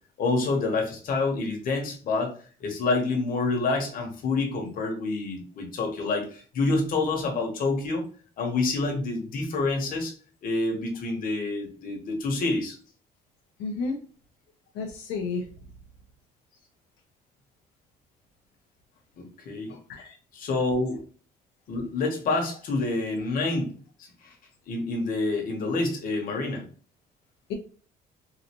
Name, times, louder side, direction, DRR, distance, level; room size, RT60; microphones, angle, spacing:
voice 1, 0.2-8.1 8.4-10.1 10.4-12.8 19.2-19.8 20.3-21.0 21.7-23.7 24.0-24.3 24.7-26.7, left 3 dB, 55° left, 2 dB, 1.3 m, -27 dB
voice 2, 13.6-14.0 14.7-15.4 19.7-20.1, left 4 dB, 90° left, 1 dB, 0.8 m, -32 dB
3.9 x 2.6 x 3.0 m, 0.41 s
cardioid pair, 110°, 17 cm